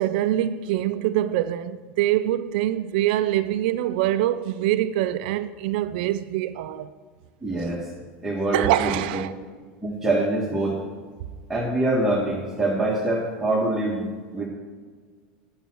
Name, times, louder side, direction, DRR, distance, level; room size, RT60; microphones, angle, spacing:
voice 1, 0.0-6.9 8.5-9.3, right 13 dB, 65° right, 0.4 m, -24 dB
voice 2, 7.4-7.9 8.2-9.2 9.8-10.8 11.5-14.1 14.3-14.5, right 2 dB, 5° right, 1.7 m, -24 dB
9.0 x 7.4 x 6.2 m
supercardioid pair, 120°, 6 cm